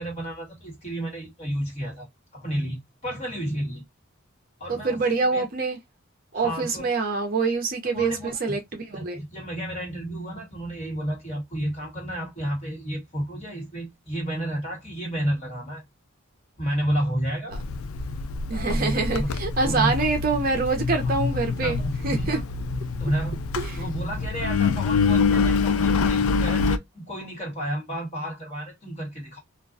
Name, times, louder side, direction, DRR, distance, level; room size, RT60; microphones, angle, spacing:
voice 1, 0.0-3.8 4.6-5.5 6.3-6.9 7.9-8.6 8.9-15.8 16.6-17.5 18.5-19.3 19.6-20.1 21.6-22.4 23.0-23.4 23.8-29.4, equal, 30° left, 1.4 m, -31 dB
voice 2, 4.7-5.8 6.3-9.2 18.5-21.8 22.0-22.4 23.6-23.8, right 4 dB, 40° right, 0.5 m, -25 dB
Engine, 17.5-26.8, left 4 dB, 75° left, 0.3 m, -25 dB
2.3 x 2.1 x 2.5 m
head